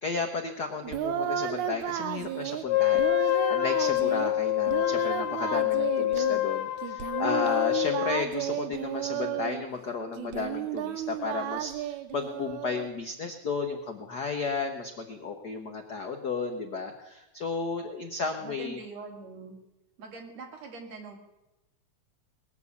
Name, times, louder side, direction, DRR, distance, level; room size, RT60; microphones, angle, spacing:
voice 1, 0.0-18.8, left 4 dB, 65° left, 5 dB, 0.9 m, -33 dB
Singing, 0.8-2.6 2.9-4.3 4.7-6.4 6.8-9.6 10.2-12.9, right 11 dB, 85° right, 2.4 m, -33 dB
Wind instrument woodwind instrument, 2.7-8.3, left 16 dB, 90° left, 2.1 m, -26 dB
voice 2, 18.4-19.6 20.0-21.2, right 4 dB, 65° right, 1 dB, 3.6 m, -43 dB
20.5 x 7.3 x 8.2 m, 0.97 s
omnidirectional pair, 3.3 m